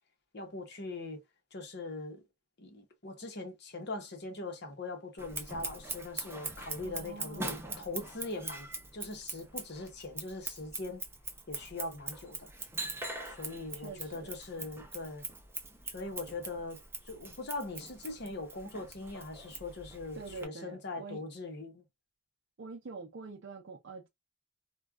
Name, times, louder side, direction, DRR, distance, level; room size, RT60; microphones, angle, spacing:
voice 1, 0.3-1.2 1.5-2.2 2.6-8.7 8.9-11.0 11.5-12.5 13.2-15.2 15.8-16.8 17.1-21.8, left 2 dB, 60° left, 1.0 m, -41 dB
Scissors, 5.2-20.5, right 3 dB, 10° right, 0.6 m, -42 dB
voice 2, 6.8-7.8 13.7-14.3 20.2-21.2 22.6-24.1, right 4 dB, 65° right, 0.6 m, -46 dB
3.2 x 2.3 x 2.3 m
head